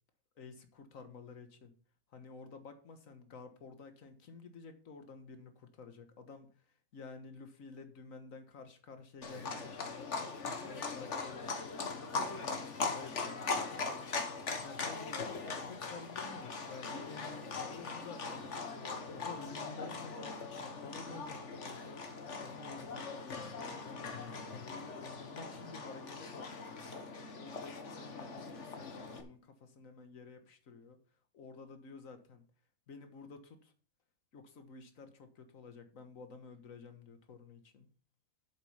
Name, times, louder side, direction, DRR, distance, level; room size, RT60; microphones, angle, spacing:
voice 1, 0.4-1.7 2.1-6.5 6.9-11.6 12.1-13.9 14.6-18.5 19.1-22.1 22.4-24.0 24.5-26.9 27.3-31.0 31.3-32.5 32.9-33.7 34.3-37.9, left 4 dB, 75° left, 8 dB, 1.8 m, -51 dB
Livestock farm animals working animals, 9.2-29.2, left 4 dB, 60° left, 1.6 m, -40 dB
8.0 x 7.9 x 5.6 m, 0.43 s
omnidirectional pair, 1.4 m